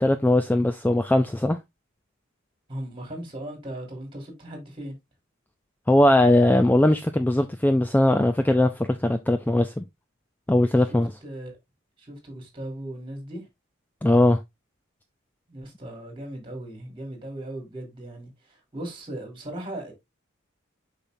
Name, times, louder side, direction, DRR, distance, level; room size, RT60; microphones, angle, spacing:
voice 1, 0.0-1.6 5.9-9.8 10.5-11.1 14.0-14.4, left 1 dB, 10° left, 0.3 m, -20 dB
voice 2, 2.7-5.0 10.8-11.5 12.0-13.5 15.5-19.9, right 1 dB, 25° right, 3.1 m, -38 dB
6.9 x 5.8 x 2.6 m
head